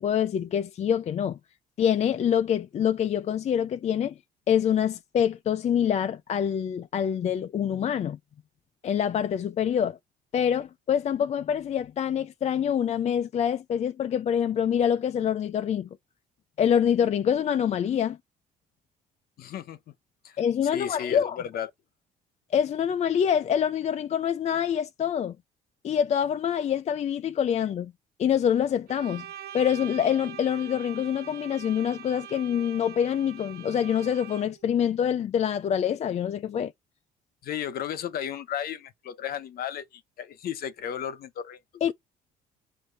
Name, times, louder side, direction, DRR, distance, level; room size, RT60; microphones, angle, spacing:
voice 1, 0.0-1.4 1.8-4.1 4.5-8.2 8.8-10.0 10.3-15.9 16.6-18.2 20.4-21.4 22.5-25.4 25.8-27.9 28.2-29.3 29.5-36.7 41.8-41.9, left 8 dB, 40° left, 0.5 m, -25 dB
voice 2, 19.4-19.8 20.2-20.4 20.7-21.7 37.4-41.6, left 9 dB, 65° left, 1.1 m, -34 dB
Bowed string instrument, 28.9-34.7, right 10 dB, 65° right, 1.1 m, -43 dB
7.7 x 2.8 x 5.4 m
cardioid pair, 110°, 17 cm